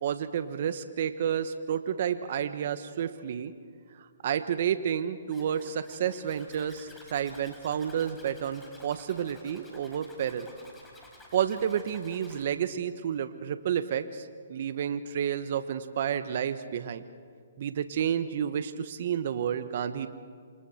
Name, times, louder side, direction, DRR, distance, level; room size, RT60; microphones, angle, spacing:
voice 1, 0.0-3.5 4.0-10.5 11.3-17.0 17.6-20.1, right 9 dB, 55° right, 11 dB, 1.2 m, -30 dB
Zipper (clothing), 5.3-12.4, left 1 dB, 5° left, 4.9 m, -53 dB
28.0 x 27.0 x 4.4 m, 2.1 s
hypercardioid pair, 145°, 0 cm